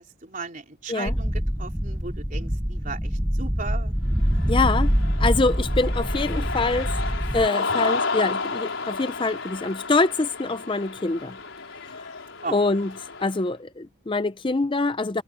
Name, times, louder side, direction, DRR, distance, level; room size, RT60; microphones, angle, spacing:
voice 1, 0.0-3.9 12.4-12.6, right 4 dB, 40° right, 3.9 m, -36 dB
sound 1, 1.1-7.5, equal, 5° right, 1.1 m, -25 dB
Cheering, 4.2-13.4, left 4 dB, 70° left, 4.6 m, -32 dB
voice 2, 4.5-4.9 5.2-6.9 7.3-11.4 12.0-12.1 12.5-12.9 13.2-15.2, left 3 dB, 25° left, 0.5 m, -25 dB
head